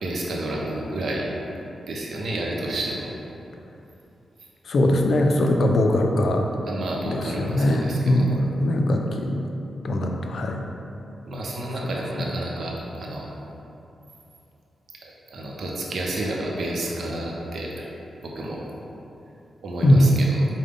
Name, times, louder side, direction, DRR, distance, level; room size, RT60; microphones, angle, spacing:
voice 1, 0.0-1.3 1.9-3.1 6.7-8.2 11.3-13.3 15.0-17.9 18.2-18.6 19.6-20.4, right 1 dB, 70° right, -2 dB, 0.6 m, -30 dB
voice 2, 4.7-6.4 7.1-9.4 9.8-10.6 19.8-20.1, left 1 dB, 65° left, 3 dB, 0.4 m, -21 dB
4.9 x 2.1 x 3.6 m, 2.9 s
supercardioid pair, 45°, 0 cm